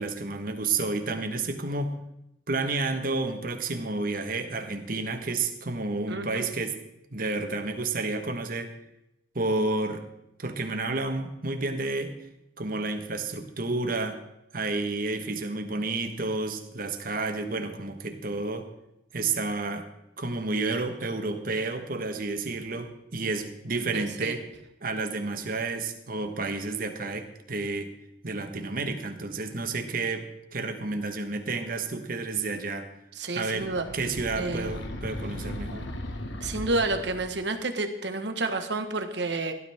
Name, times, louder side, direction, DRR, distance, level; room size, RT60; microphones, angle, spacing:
voice 1, 0.0-2.0 2.5-6.8 7.1-8.7 9.3-10.0 10.4-12.2 12.6-14.2 14.5-18.7 19.1-19.9 20.2-24.4 24.8-27.9 28.2-32.9 33.3-35.9, right 3 dB, 50° right, 6 dB, 1.4 m, -30 dB
voice 2, 6.1-6.5 23.9-24.3 33.2-33.9 34.4-34.7 36.4-39.5, right 2 dB, 70° right, 7 dB, 1.4 m, -30 dB
sound 1, 33.5-37.4, left 1 dB, 90° left, 1.6 m, -37 dB
17.0 x 12.5 x 3.6 m, 0.84 s
head